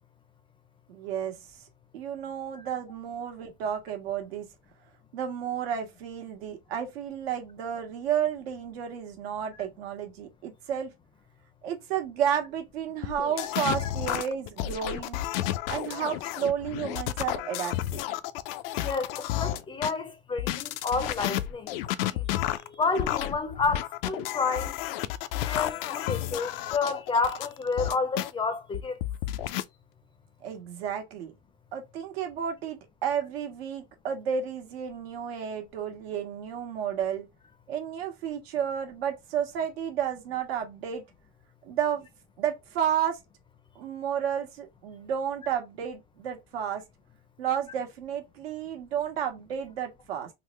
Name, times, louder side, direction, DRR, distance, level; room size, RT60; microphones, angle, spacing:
voice 1, 0.9-1.4 1.9-4.5 5.1-10.9 11.6-15.2 15.7-18.0 30.4-31.3 31.7-37.3 37.7-41.0 41.6-42.1 42.4-43.2 43.7-46.8 47.4-50.3, right 8 dB, 80° right, 1.2 m, -32 dB
sound 1, 13.0-19.9 20.4-28.3 28.7-29.6, left 13 dB, 65° left, 0.4 m, -31 dB
voice 2, 18.8-21.7 22.1-22.2 22.6-24.8 25.3-29.0, left 4 dB, 15° left, 0.5 m, -30 dB
3.6 x 2.0 x 3.1 m
supercardioid pair, 125°, 30 cm